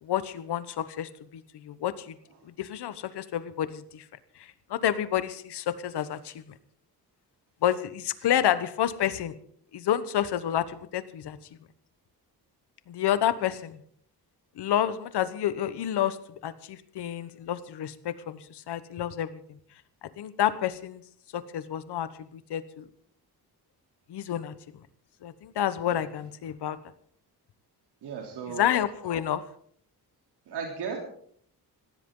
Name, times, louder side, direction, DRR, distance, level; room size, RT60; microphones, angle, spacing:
voice 1, 0.0-2.2 2.4-4.0 4.4-6.5 7.6-9.3 9.7-11.4 12.9-13.8 14.6-16.2 16.4-19.3 20.2-21.0 21.3-22.9 24.1-24.5 25.2-26.8 28.5-29.4, left 11 dB, 85° left, 14 dB, 1.2 m, -29 dB
voice 2, 28.0-28.6 30.5-31.0, right 6 dB, 90° right, 1 dB, 3.5 m, -35 dB
19.0 x 16.0 x 3.9 m, 0.62 s
wide cardioid pair, 180°, 39 cm